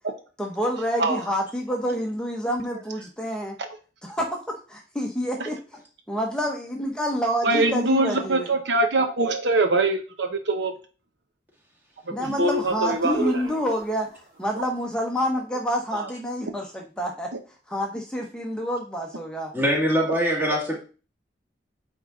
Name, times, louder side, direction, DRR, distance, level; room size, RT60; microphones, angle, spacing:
voice 1, 0.4-3.6 4.0-5.6 6.1-8.5 12.1-14.1 14.4-17.3 17.7-19.5, equal, 5° left, 0 dB, 0.8 m, -28 dB
voice 2, 7.4-10.7 12.1-13.4 14.6-14.7 15.9-16.1 17.3-17.4, right 2 dB, 80° right, 6 dB, 1.0 m, -23 dB
sound 1, 12.2-14.6, right 1 dB, 55° right, 2.4 m, -42 dB
voice 3, 19.5-20.8, equal, 10° right, -2 dB, 1.9 m, -23 dB
8.8 x 3.7 x 3.7 m, 0.36 s
head